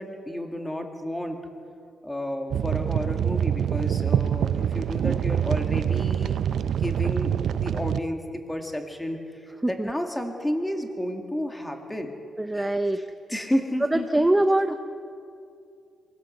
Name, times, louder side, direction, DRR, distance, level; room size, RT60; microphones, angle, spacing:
voice 1, 0.0-1.4 2.0-12.2 12.5-12.7 12.9-13.0 13.3-14.0, equal, 5° left, 4 dB, 2.0 m, -31 dB
sound 1, 2.5-8.0, right 9 dB, 60° right, 0.5 m, -25 dB
voice 2, 12.4-13.1 13.9-14.7, right 1 dB, 10° right, 8 dB, 0.6 m, -23 dB
24.0 x 17.5 x 7.9 m, 2.5 s
cardioid pair, 155°, 0 cm